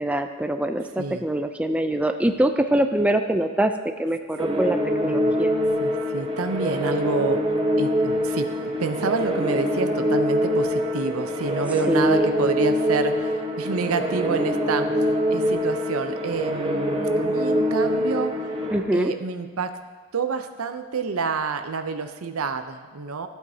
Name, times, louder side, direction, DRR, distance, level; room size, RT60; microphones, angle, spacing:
voice 1, 0.0-3.7 4.0-5.5 11.9-12.3 18.7-19.1, right 1 dB, 5° right, 6 dB, 0.3 m, -23 dB
sound 1, 4.4-18.8, equal, 25° right, 0.9 m, -24 dB
voice 2, 5.0-5.4 5.8-18.3 18.9-19.8 20.1-23.3, right 4 dB, 90° right, 9 dB, 0.6 m, -28 dB
14.5 x 8.2 x 2.8 m, 1.4 s
head